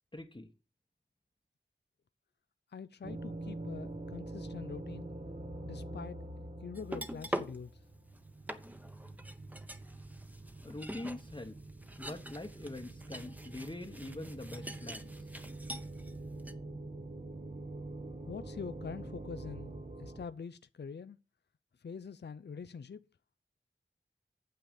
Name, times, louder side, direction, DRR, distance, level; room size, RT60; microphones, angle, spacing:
voice 1, 0.1-0.5 10.6-11.5 12.0-15.3, left 2 dB, 25° left, 1.0 m, -44 dB
voice 2, 2.7-5.1 5.7-7.7 18.3-19.7 20.0-21.2 21.8-23.0, left 6 dB, 60° left, 0.5 m, -44 dB
sound 1, 3.0-20.3, right 2 dB, 40° right, 1.1 m, -45 dB
sound 2, 6.7-7.6 8.1-8.2 8.5-16.1 16.4-16.5, equal, 10° right, 1.0 m, -44 dB
9.0 x 7.6 x 5.2 m
wide cardioid pair, 50°, 20 cm